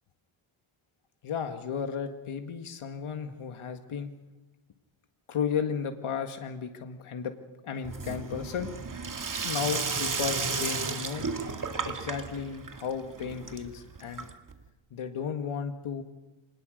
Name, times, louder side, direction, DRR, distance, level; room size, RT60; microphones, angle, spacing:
voice 1, 1.2-4.1 5.3-7.3 7.6-8.7 9.4-11.3 11.9-14.3 14.9-16.0, left 7 dB, 75° left, 6 dB, 2.0 m, -34 dB
Sink (filling or washing), 7.8-14.6, right 4 dB, 40° right, 2.2 m, -34 dB
26.5 x 20.0 x 6.6 m, 1.0 s
wide cardioid pair, 110°, 50 cm